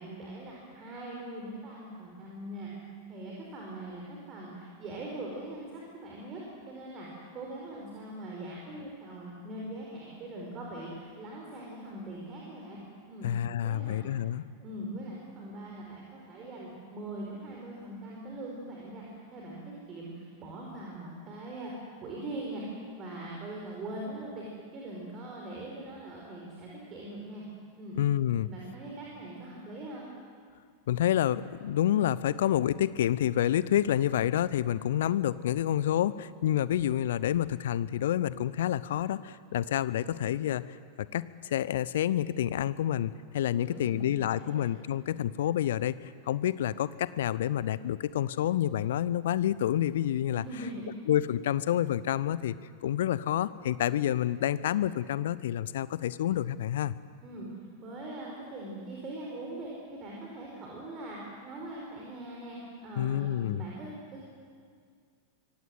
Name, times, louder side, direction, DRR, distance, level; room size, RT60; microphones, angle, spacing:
voice 1, 0.0-2.7 3.1-7.1 7.3-12.8 13.1-13.3 13.6-14.0 14.6-21.7 22.0-22.6 23.0-24.5 24.7-27.4 27.8-28.0 28.4-30.1 43.5-44.7 50.3-50.9 57.2-57.5 57.8-64.2, right 1 dB, 30° right, -3 dB, 4.8 m, -41 dB
voice 2, 13.2-14.4 27.9-28.5 30.9-50.4 51.1-52.5 52.8-56.9 63.0-63.6, left 11 dB, 60° left, 18 dB, 0.7 m, -28 dB
24.5 x 17.5 x 8.0 m, 2.1 s
figure-of-eight pair, 90°, 0 cm